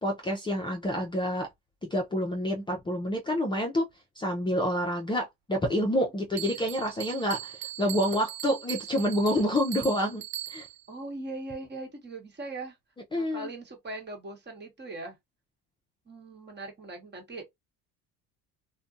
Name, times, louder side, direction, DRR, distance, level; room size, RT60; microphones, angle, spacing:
voice 1, 0.0-1.5 1.8-3.8 4.2-10.2 10.5-10.7 13.1-13.5, equal, 15° left, 0.5 m, -28 dB
Bell, 6.4-10.9, right 14 dB, 50° right, 0.5 m, -40 dB
voice 2, 10.9-12.8 13.1-15.2 16.1-17.4, right 2 dB, 30° right, 1.2 m, -40 dB
2.5 x 2.2 x 2.5 m
supercardioid pair, 95°, 35 cm